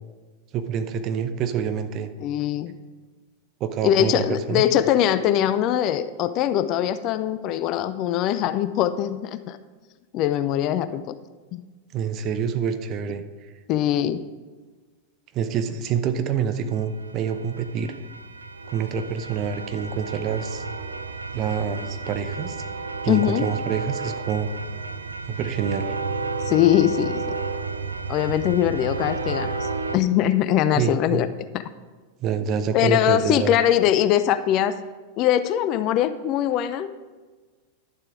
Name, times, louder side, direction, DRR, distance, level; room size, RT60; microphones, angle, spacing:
voice 1, 0.5-2.1 3.6-4.6 11.9-13.2 15.3-18.0 18.7-20.6 21.3-22.6 23.0-24.5 25.3-26.0 30.8-31.2 32.2-33.6, right 7 dB, 35° right, 9 dB, 0.8 m, -27 dB
voice 2, 2.2-2.7 3.8-9.6 10.1-11.1 11.5-11.6 13.7-14.2 23.1-23.5 26.5-27.2 28.1-31.3 31.5-31.6 32.7-34.8 35.2-37.0, left 11 dB, 40° left, 13 dB, 0.5 m, -22 dB
sound 1, 16.8-30.0, right 4 dB, 80° right, 0.5 m, -32 dB
11.0 x 7.4 x 4.9 m, 1.4 s
figure-of-eight pair, 90°, 0 cm